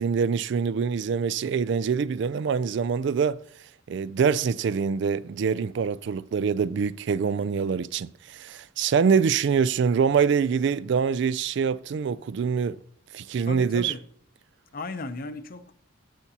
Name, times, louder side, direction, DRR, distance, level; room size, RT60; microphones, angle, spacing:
voice 1, 0.0-3.4 3.9-12.8 13.1-13.9, right 6 dB, 60° right, 0.3 m, -25 dB
voice 2, 13.4-14.0 14.7-15.7, left 2 dB, 45° left, 0.7 m, -36 dB
17.5 x 6.0 x 2.8 m
head